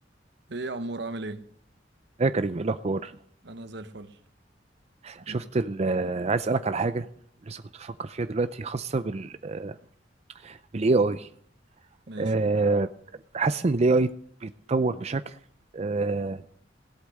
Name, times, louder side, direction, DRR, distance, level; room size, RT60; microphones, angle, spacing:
voice 1, 0.5-1.5 3.4-4.2 5.3-5.4 12.1-12.6, right 2 dB, 70° right, 1.1 m, -36 dB
voice 2, 2.2-3.2 5.0-7.1 7.4-9.8 10.3-11.3 12.2-12.9 13.3-14.1 14.4-15.4 15.7-16.4, right 3 dB, 35° right, 0.5 m, -26 dB
17.0 x 8.4 x 6.4 m
head